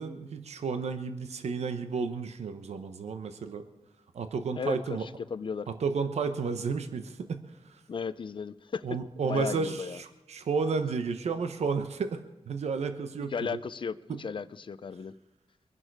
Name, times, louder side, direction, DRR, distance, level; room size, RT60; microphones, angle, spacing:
voice 1, 0.0-3.6 4.1-5.0 5.7-7.4 8.8-13.6 14.1-14.2, right 5 dB, 85° right, 9 dB, 1.1 m, -32 dB
voice 2, 4.6-5.7 7.9-9.0 9.2-10.0 13.3-15.1, left 5 dB, 50° left, 16 dB, 0.6 m, -35 dB
23.0 x 11.0 x 4.8 m, 1.0 s
wide cardioid pair, 115°, 11 cm